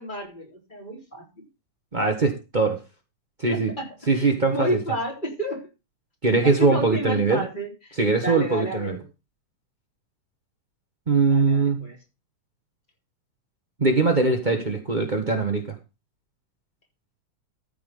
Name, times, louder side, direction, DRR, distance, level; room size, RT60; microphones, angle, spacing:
voice 1, 0.0-1.5 3.5-3.9 4.1-5.7 6.4-7.9 8.2-9.0 11.3-12.0, equal, 15° left, 3.9 m, -31 dB
voice 2, 1.9-2.8 3.4-3.7 4.1-4.8 6.2-7.4 8.0-9.0 11.1-11.9 13.8-15.8, right 3 dB, 50° right, 0.5 m, -21 dB
14.0 x 5.8 x 5.4 m
omnidirectional pair, 3.6 m